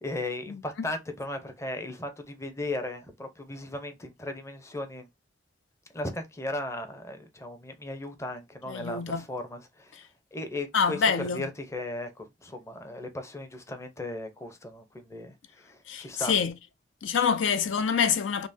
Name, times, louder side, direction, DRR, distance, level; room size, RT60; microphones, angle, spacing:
voice 1, 0.0-5.1 5.9-11.0 11.3-16.3, left 1 dB, 15° left, 0.6 m, -37 dB
voice 2, 8.7-9.2 10.7-11.5 15.9-16.5 17.0-18.5, left 6 dB, 85° left, 0.4 m, -26 dB
5.3 x 2.0 x 2.6 m
head